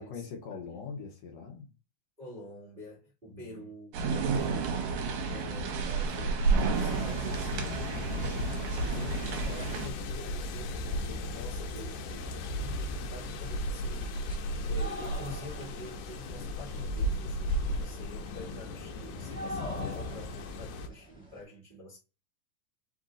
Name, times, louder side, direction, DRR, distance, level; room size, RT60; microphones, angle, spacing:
voice 1, 0.0-1.7 3.3-3.7 4.3-4.8, left 5 dB, 70° left, 2.0 m, -43 dB
voice 2, 2.2-4.9 5.3-22.0, left 1 dB, 25° right, 1.1 m, -47 dB
sound 1, 3.9-9.9, right 4 dB, 70° right, 2.0 m, -30 dB
sound 2, 6.7-20.9, left 1 dB, 90° left, 2.2 m, -35 dB
sound 3, 9.2-21.4, equal, 5° left, 1.2 m, -48 dB
4.9 x 2.6 x 3.8 m
omnidirectional pair, 3.5 m